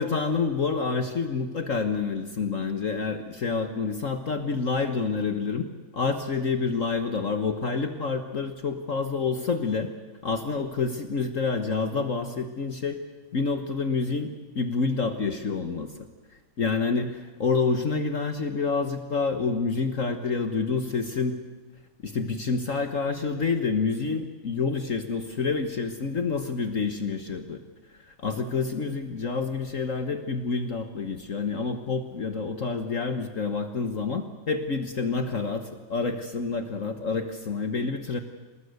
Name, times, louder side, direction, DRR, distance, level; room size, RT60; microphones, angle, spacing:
voice 1, 0.0-5.7 5.9-9.9 10.2-13.0 13.3-15.9 16.6-21.4 22.0-27.6 28.0-38.2, left 4 dB, 80° left, 7 dB, 0.7 m, -28 dB
26.5 x 19.5 x 8.1 m, 1.3 s
omnidirectional pair, 3.5 m